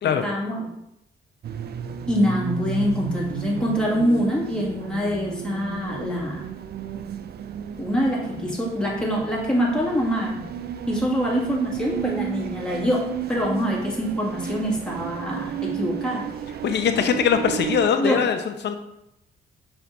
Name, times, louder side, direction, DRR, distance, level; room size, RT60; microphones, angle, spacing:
voice 1, 0.0-0.7 2.1-6.4 7.8-10.4 10.9-16.3 18.0-18.2, equal, 5° left, -5 dB, 2.1 m, -25 dB
sound 1, 1.4-17.9, right 9 dB, 55° right, 0.5 m, -33 dB
voice 2, 16.6-18.8, left 7 dB, 60° left, 7 dB, 0.8 m, -22 dB
6.8 x 5.6 x 2.7 m, 0.84 s
cardioid pair, 90°, 20 cm